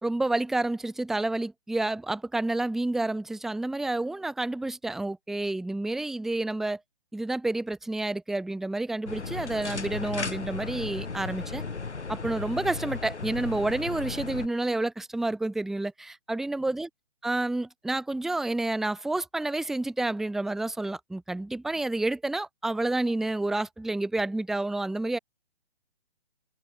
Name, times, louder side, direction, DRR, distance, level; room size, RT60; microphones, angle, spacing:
voice 1, 0.0-6.8 7.1-11.6 12.1-16.9 17.2-25.2, right 2 dB, ahead, 0.9 m, -29 dB
sound 1, 9.1-14.5, left 4 dB, 85° left, 7.6 m, -35 dB
hypercardioid pair, 145°, 33 cm